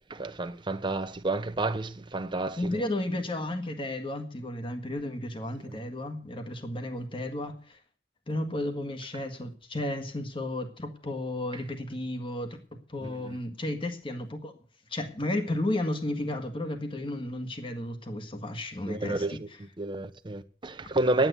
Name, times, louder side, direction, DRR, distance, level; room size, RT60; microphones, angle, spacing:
voice 1, 0.1-2.8 5.7-5.8 13.0-13.4 18.9-19.5 19.8-21.3, right 2 dB, 30° right, 0.9 m, -30 dB
voice 2, 2.6-7.8 8.3-12.6 12.9-14.5 14.9-19.6, left 1 dB, 30° left, 1.7 m, -33 dB
10.5 x 9.1 x 8.1 m
head